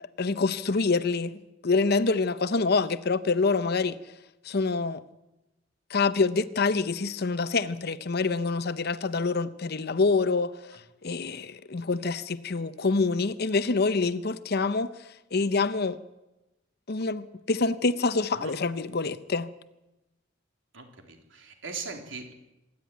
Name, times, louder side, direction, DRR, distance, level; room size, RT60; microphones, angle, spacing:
voice 1, 0.2-4.0 4.4-5.0 5.9-14.9 15.3-16.0 16.9-19.5, left 4 dB, 55° left, 0.8 m, -26 dB
voice 2, 20.7-22.3, right 4 dB, 75° right, 3.6 m, -40 dB
26.0 x 12.0 x 9.4 m
head